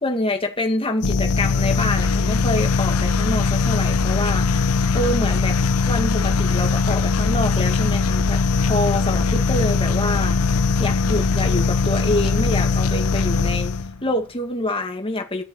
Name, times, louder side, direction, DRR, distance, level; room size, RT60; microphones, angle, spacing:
voice 1, 0.0-5.6 5.9-10.4 10.8-13.7 14.0-15.4, left 1 dB, 25° left, 2.2 m, -26 dB
sound 1, 1.0-14.0, left 4 dB, 80° left, 0.7 m, -20 dB
13.5 x 6.6 x 9.7 m
head